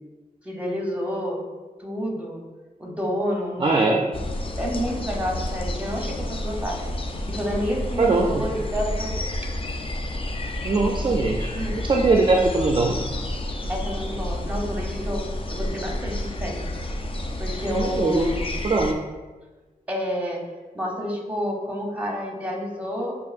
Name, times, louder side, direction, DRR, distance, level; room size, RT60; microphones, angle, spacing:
voice 1, 0.4-1.4 1.8-2.4 2.8-4.0 4.6-6.8 7.3-9.4 10.4-10.6 11.5-11.8 13.7-15.2 15.5-16.6 17.4-18.5 19.9-20.4 20.7-23.2, equal, 10° right, -1 dB, 0.9 m, -29 dB
voice 2, 3.6-4.0 8.0-8.4 10.6-11.5 11.9-13.0 17.7-18.3 18.6-18.9, right 3 dB, 35° right, 0 dB, 0.4 m, -21 dB
sound 1, 4.1-18.9, left 1 dB, 35° left, 0.4 m, -30 dB
6.0 x 2.4 x 2.5 m, 1.2 s
wide cardioid pair, 70°, 15 cm